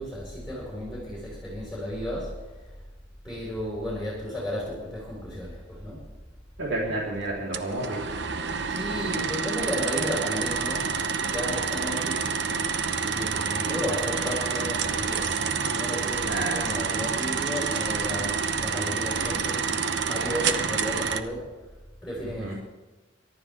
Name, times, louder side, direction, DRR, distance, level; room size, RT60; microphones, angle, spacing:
voice 1, 0.0-2.4 3.2-6.0 8.7-10.9 11.2-12.3 13.0-19.6 20.0-21.5 22.0-22.5, left 1 dB, ahead, -6 dB, 5.1 m, -33 dB
voice 2, 6.6-8.0 16.2-16.7 22.4-22.5, right 2 dB, 80° right, -4 dB, 3.6 m, -30 dB
sound 1, 7.5-21.2, right 5 dB, 65° right, 0.9 m, -28 dB
24.0 x 12.0 x 3.6 m, 1.2 s
head